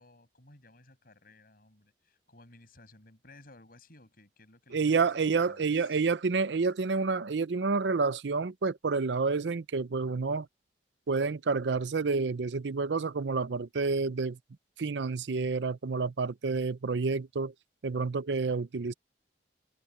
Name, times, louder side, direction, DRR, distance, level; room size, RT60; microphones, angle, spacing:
voice 1, 0.0-6.0, left 2 dB, 55° left, 7.7 m, -57 dB
voice 2, 4.7-10.5 11.1-14.4 14.8-17.5 17.8-18.9, right 4 dB, 75° right, 0.6 m, -29 dB
head